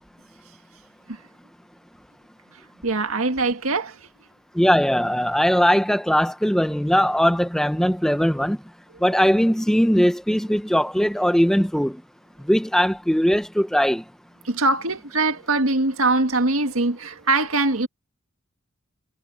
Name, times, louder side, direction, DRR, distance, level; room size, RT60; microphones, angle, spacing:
voice 1, 2.8-4.1 14.4-17.9, right 2 dB, 80° right, 1.8 m, -22 dB
voice 2, 4.5-8.6 9.0-12.0 12.4-14.0, equal, ahead, 0.7 m, -20 dB
head